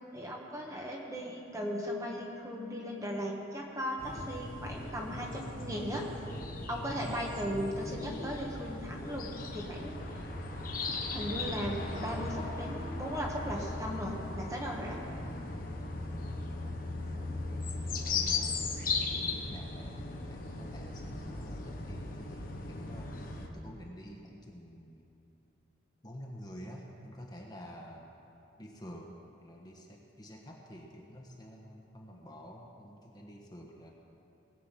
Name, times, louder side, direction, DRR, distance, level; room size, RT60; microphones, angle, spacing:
voice 1, 0.1-6.0 6.7-10.0 11.1-15.0, equal, 15° right, -1 dB, 1.3 m, -37 dB
sound 1, 4.0-23.5, left 3 dB, 45° left, 1.1 m, -37 dB
voice 2, 18.0-25.0 26.0-28.1 28.6-29.1 29.4-33.9, equal, 20° left, -1 dB, 1.3 m, -49 dB
20.0 x 7.9 x 5.8 m, 2.7 s
head